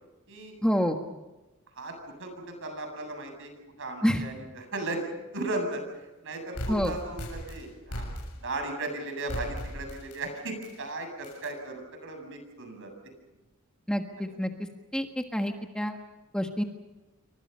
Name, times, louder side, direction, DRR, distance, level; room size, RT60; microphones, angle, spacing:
voice 1, 0.6-1.0 4.0-4.3 6.7-6.9 13.9-14.5 14.9-16.0 16.3-16.6, equal, 5° left, 4 dB, 1.5 m, -27 dB
voice 2, 2.2-3.5 3.8-5.8 6.2-8.1 8.4-12.9 14.2-14.4, right 2 dB, 60° right, 5 dB, 7.9 m, -36 dB
sound 1, 6.6-8.6 9.3-10.2 10.6-10.7 11.2-11.5, equal, 80° left, 7.1 m, -37 dB
29.0 x 24.5 x 5.6 m, 1.1 s
head